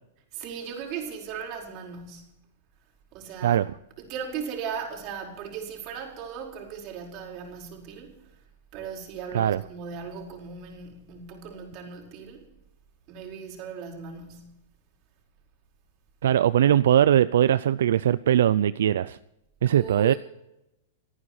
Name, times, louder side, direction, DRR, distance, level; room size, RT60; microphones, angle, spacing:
voice 1, 0.3-2.4 3.1-3.6 4.0-8.1 8.7-12.5 13.1-14.7 19.7-20.2, right 6 dB, 40° right, 4.6 m, -37 dB
voice 2, 16.2-19.2 19.6-20.1, right 10 dB, 80° right, 0.4 m, -20 dB
27.5 x 9.6 x 4.4 m
hypercardioid pair, 145°, 0 cm